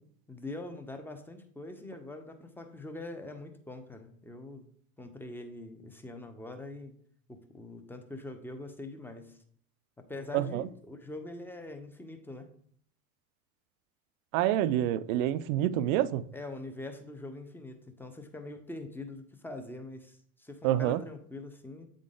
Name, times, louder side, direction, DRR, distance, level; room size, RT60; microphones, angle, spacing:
voice 1, 0.3-4.6 5.0-6.9 7.3-9.4 10.0-12.5 16.3-21.9, left 2 dB, 5° left, 0.8 m, -43 dB
voice 2, 14.3-16.3 20.6-21.0, right 12 dB, 65° right, 0.6 m, -27 dB
8.5 x 3.8 x 3.8 m
hypercardioid pair, 100°, 44 cm